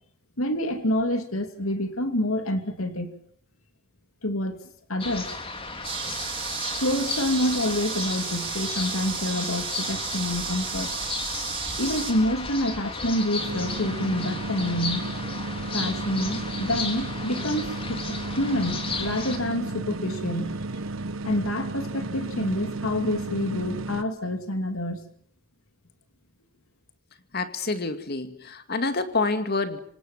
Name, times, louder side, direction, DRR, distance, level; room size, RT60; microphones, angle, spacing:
voice 1, 0.4-3.1 4.2-4.6 4.9-5.3 6.8-11.0 11.8-15.1 15.7-20.6 21.2-25.1, left 1 dB, 85° left, 8 dB, 2.6 m, -27 dB
sound 1, 5.0-19.4, left 3 dB, 25° left, 3.5 m, -34 dB
sound 2, 5.8-12.1, right 6 dB, 25° right, 6.0 m, -33 dB
sound 3, 13.4-24.0, right 2 dB, 75° right, 1.2 m, -33 dB
voice 2, 27.3-29.8, left 3 dB, 50° left, 9 dB, 2.4 m, -27 dB
26.5 x 26.0 x 7.4 m, 0.64 s
head